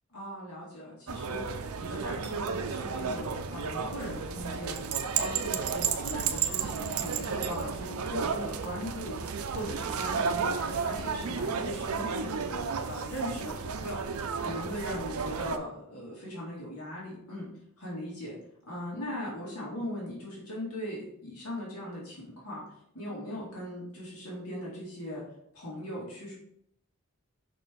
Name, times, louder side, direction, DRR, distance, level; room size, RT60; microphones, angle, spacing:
voice 1, 0.1-17.5 17.8-18.4 18.7-22.6 22.9-25.2 25.5-26.3, equal, 90° left, -5 dB, 2.2 m, -39 dB
sound 1, 1.1-15.6, right 6 dB, 85° right, 0.5 m, -33 dB
5.9 x 4.4 x 3.6 m, 0.75 s
head